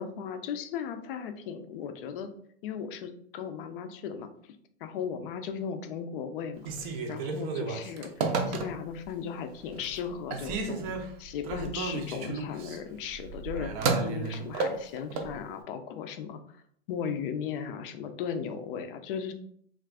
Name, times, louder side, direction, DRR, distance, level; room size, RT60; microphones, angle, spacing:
voice 1, 0.0-2.3 2.6-4.3 4.8-6.7 7.1-16.4 16.9-19.3, left 7 dB, 50° left, 8 dB, 0.5 m, -37 dB
Telephone, 6.6-9.1 9.5-10.0 10.3-15.3, right 4 dB, 35° right, 0.5 m, -32 dB
2.5 x 2.4 x 3.4 m, 0.64 s
hypercardioid pair, 140°, 35 cm